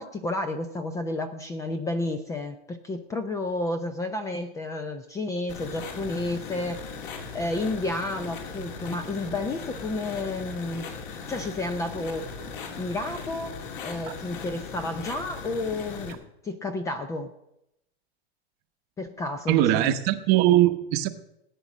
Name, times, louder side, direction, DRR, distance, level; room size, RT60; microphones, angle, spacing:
voice 1, 0.0-7.0 7.3-10.9 11.3-12.3 12.8-13.6 13.8-17.3 19.0-19.9, left 2 dB, 10° left, 9 dB, 0.6 m, -31 dB
sound 1, 5.5-16.1, left 5 dB, 50° left, 3.3 m, -38 dB
voice 2, 19.5-21.1, right 14 dB, 30° right, 9 dB, 1.0 m, -21 dB
18.0 x 9.6 x 6.2 m, 0.83 s
hypercardioid pair, 150°, 32 cm